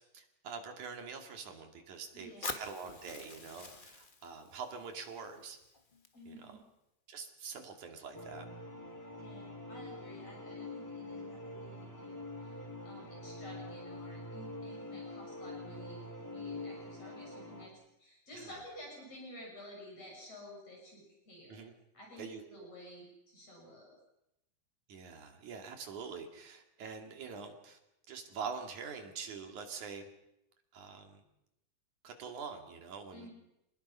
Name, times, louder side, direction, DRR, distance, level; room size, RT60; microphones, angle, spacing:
voice 1, 0.1-5.6 6.3-6.6 7.1-8.5 18.3-18.5 21.5-21.7 22.2-22.7 24.9-27.8 28.1-30.1 30.7-31.2 32.0-33.3, right 5 dB, 80° right, 4 dB, 4.0 m, -45 dB
voice 2, 2.1-2.5 6.1-6.6 9.2-17.7 18.0-21.6 21.9-24.0 33.1-33.3, equal, 55° left, -2 dB, 7.5 m, -52 dB
Fire, 2.4-6.4, left 3 dB, 25° left, 1.1 m, -46 dB
sound 1, 8.1-17.7, left 2 dB, 5° left, 2.1 m, -45 dB
28.5 x 20.0 x 5.7 m, 0.86 s
omnidirectional pair, 3.4 m